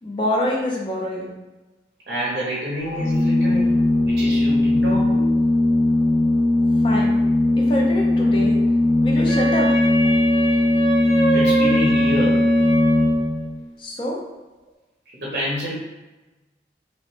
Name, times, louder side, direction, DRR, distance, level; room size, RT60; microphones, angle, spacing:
voice 1, 0.0-1.3 6.8-7.1 7.6-8.6 9.0-9.7 13.8-14.2, left 1 dB, 30° left, -2 dB, 0.4 m, -25 dB
voice 2, 2.1-5.3 11.3-12.4 15.1-15.7, equal, 55° right, -5 dB, 0.6 m, -28 dB
Organ, 2.8-13.6, left 2 dB, 30° right, 0.8 m, -19 dB
Wind instrument woodwind instrument, 9.3-13.4, right 3 dB, 60° left, 1.3 m, -25 dB
2.9 x 2.1 x 3.1 m, 1.1 s
head